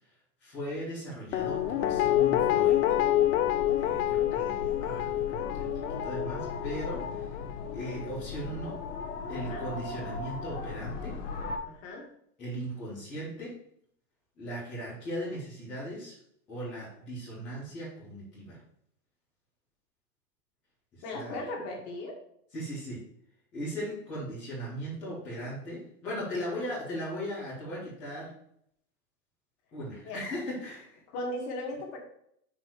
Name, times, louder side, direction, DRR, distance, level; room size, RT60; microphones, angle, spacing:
voice 1, 0.4-3.0 3.8-7.3 7.7-8.8 9.3-11.1 12.4-13.5 14.4-16.1 16.5-18.6 21.1-21.3 22.5-23.0 23.5-28.3 29.7-31.0, equal, 5° left, -15 dB, 0.4 m, -38 dB
Guitar, 1.3-8.3 8.7-8.8, left 13 dB, 70° left, 0.6 m, -28 dB
sound 1, 1.4-11.6, left 4 dB, 50° left, 1.6 m, -38 dB
voice 2, 11.7-12.1 21.0-22.2 26.4-26.6 30.0-30.2 31.1-32.0, left 1 dB, 30° left, 0 dB, 2.1 m, -38 dB
5.8 x 4.8 x 6.6 m, 0.71 s
supercardioid pair, 165°, 47 cm